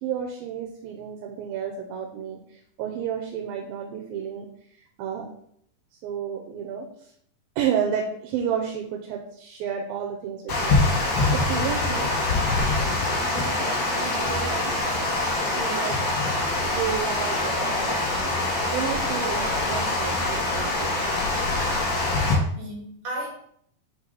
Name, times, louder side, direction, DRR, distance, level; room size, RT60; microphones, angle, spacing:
voice 1, 0.0-4.5 5.0-5.3 6.0-7.1 7.6-10.8 11.3-12.1 12.8-15.1 15.6-16.0 16.7-18.1 18.7-21.1, right 8 dB, 85° right, 1 dB, 2.5 m, -31 dB
Water, 10.5-22.3, left 2 dB, 45° left, 1.9 m, -24 dB
voice 2, 22.6-23.3, right 1 dB, 60° right, -2 dB, 3.0 m, -35 dB
5.6 x 4.4 x 3.9 m, 0.67 s
omnidirectional pair, 4.2 m